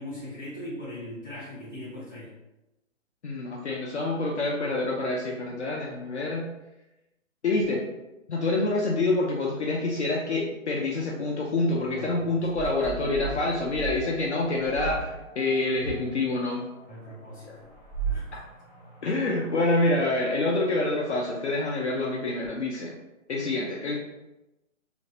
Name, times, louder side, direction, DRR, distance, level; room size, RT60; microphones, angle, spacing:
voice 1, 0.0-2.3 11.8-12.2 16.9-17.7 18.0-18.3, left 1 dB, 15° left, -12 dB, 0.8 m, -40 dB
voice 2, 3.2-6.5 7.4-7.8 8.3-16.6 17.4-17.6 19.0-22.9 23.3-24.0, left 2 dB, 60° left, -3 dB, 0.5 m, -27 dB
sound 1, 10.8-19.9, right 4 dB, 35° right, 0.4 m, -38 dB
2.5 x 2.0 x 2.7 m, 0.98 s
hypercardioid pair, 175°, 40 cm